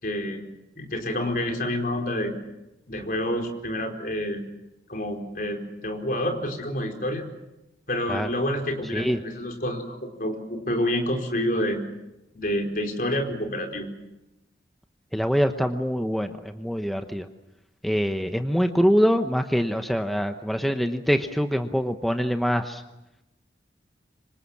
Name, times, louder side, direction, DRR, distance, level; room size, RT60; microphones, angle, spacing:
voice 1, 0.0-0.5 0.8-2.3 2.9-4.4 4.9-7.2 7.9-11.8 12.3-13.9, left 1 dB, 50° left, 3 dB, 4.5 m, -28 dB
voice 2, 15.1-17.3 17.8-22.8, equal, ahead, 6 dB, 0.9 m, -24 dB
26.0 x 25.5 x 7.3 m, 0.94 s
head